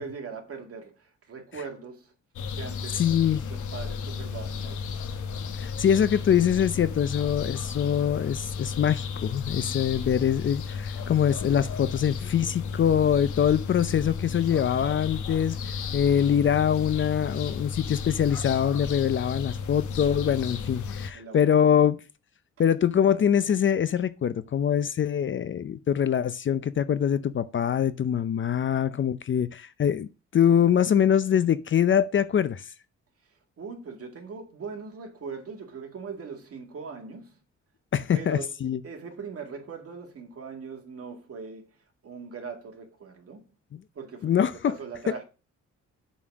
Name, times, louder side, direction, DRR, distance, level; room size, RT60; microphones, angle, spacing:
voice 1, 0.0-2.1 2.5-3.0 3.5-5.0 20.5-20.6 21.1-21.9 33.6-37.4 38.1-38.5 38.8-41.8 42.0-43.5 43.9-45.2, right 5 dB, 50° right, 2.1 m, -40 dB
sound 1, 2.4-21.1, left 5 dB, 75° left, 1.1 m, -33 dB
voice 2, 3.0-3.5 5.5-15.6 15.9-22.0 22.6-32.7 37.9-38.8 44.2-44.7, left 9 dB, 40° left, 0.6 m, -24 dB
7.6 x 4.2 x 6.0 m
cardioid pair, 90°, 30 cm